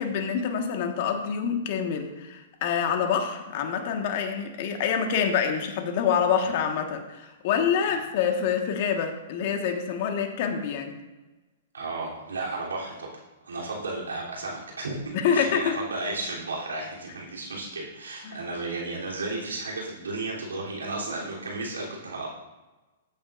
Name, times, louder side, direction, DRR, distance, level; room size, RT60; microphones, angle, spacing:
voice 1, 0.0-11.0 15.1-15.8 18.2-18.4, left 7 dB, 55° left, 4 dB, 1.5 m, -26 dB
voice 2, 11.7-22.3, right 2 dB, 90° right, -4 dB, 3.2 m, -34 dB
14.0 x 8.8 x 2.6 m, 1.1 s
hypercardioid pair, 125°, 0 cm